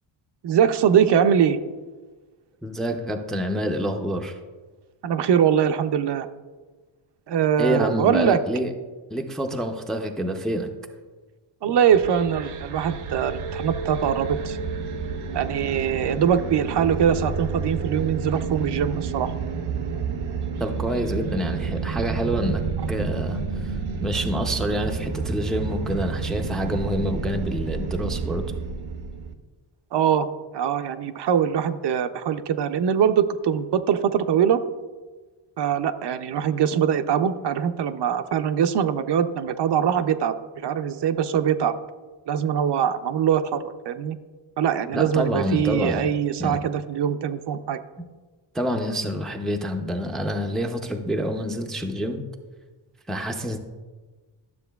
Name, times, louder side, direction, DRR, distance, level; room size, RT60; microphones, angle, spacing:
voice 1, 0.4-1.6 5.0-6.3 7.3-8.4 11.6-14.6 15.3-19.3 29.9-30.3 30.5-34.6 35.6-40.3 40.6-41.7 42.3-44.2 44.6-47.8, right 8 dB, 60° right, 10 dB, 0.5 m, -22 dB
voice 2, 2.6-4.4 7.6-8.7 9.1-10.7 11.7-11.8 20.6-23.7 24.0-28.4 44.9-46.1 46.4-46.6 48.5-52.2 53.1-53.6, equal, ahead, 4 dB, 0.4 m, -27 dB
sound 1, 11.9-29.3, right 5 dB, 85° right, 0.8 m, -30 dB
12.0 x 7.2 x 2.3 m, 1.3 s
wide cardioid pair, 145°, 49 cm